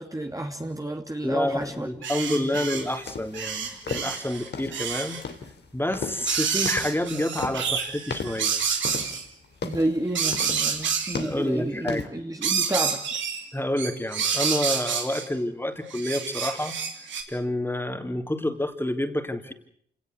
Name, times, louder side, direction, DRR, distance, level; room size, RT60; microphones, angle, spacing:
voice 1, 0.0-1.9 2.3-2.5 9.6-13.0, right 1 dB, 20° right, 3 dB, 2.7 m, -30 dB
voice 2, 1.2-5.2 5.7-8.5 11.1-12.1 13.5-16.8 17.3-19.5, left 1 dB, 10° left, 6 dB, 3.5 m, -28 dB
sound 1, 2.0-3.0 3.3-5.2 6.2-9.2 10.1-11.3 12.4-13.5 13.8-15.3 15.9-17.2, right 7 dB, 90° right, 2.8 m, -28 dB
sound 2, 2.4-12.1, left 5 dB, 65° left, 3.0 m, -36 dB
27.5 x 18.5 x 8.2 m, 0.66 s
supercardioid pair, 45°, 19 cm